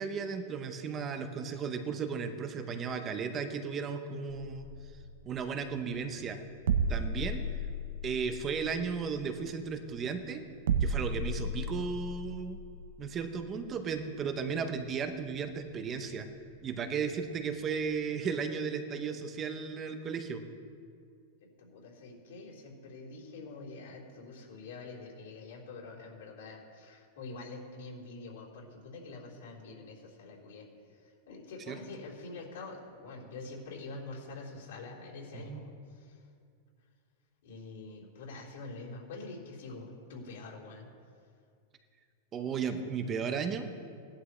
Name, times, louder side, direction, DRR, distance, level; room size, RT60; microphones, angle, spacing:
voice 1, 0.0-4.7 5.2-6.4 6.9-7.5 8.0-10.5 10.8-12.6 13.0-16.3 16.6-20.4 31.7-31.8 35.3-35.6 42.3-43.7, right 6 dB, 20° right, 8 dB, 0.7 m, -35 dB
sound 1, 4.7-17.6, right 3 dB, 85° right, 0.7 m, -37 dB
voice 2, 21.4-36.2 37.4-40.9, left 3 dB, 70° left, -4 dB, 3.8 m, -46 dB
18.0 x 11.0 x 3.2 m, 2.3 s
supercardioid pair, 175°, 0 cm